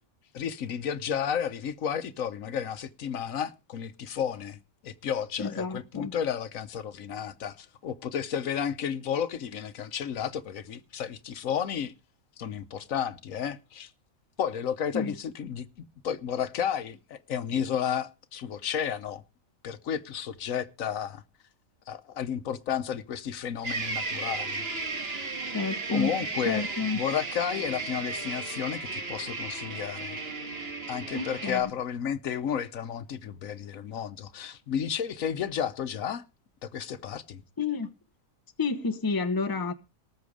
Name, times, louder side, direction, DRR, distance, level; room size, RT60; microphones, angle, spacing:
voice 1, 0.3-11.9 12.4-13.9 14.4-19.2 19.6-21.2 21.9-24.6 25.9-26.7 26.9-30.2 30.9-36.2 36.6-37.4, left 8 dB, 80° left, 1.3 m, -32 dB
voice 2, 5.4-6.1 14.9-15.2 25.5-26.1 26.4-27.0 31.1-31.7 37.6-37.9 38.6-39.7, left 4 dB, 20° left, 0.8 m, -30 dB
sound 1, 23.6-31.6, right 3 dB, 50° right, 1.8 m, -35 dB
19.0 x 6.9 x 4.9 m
omnidirectional pair, 1.4 m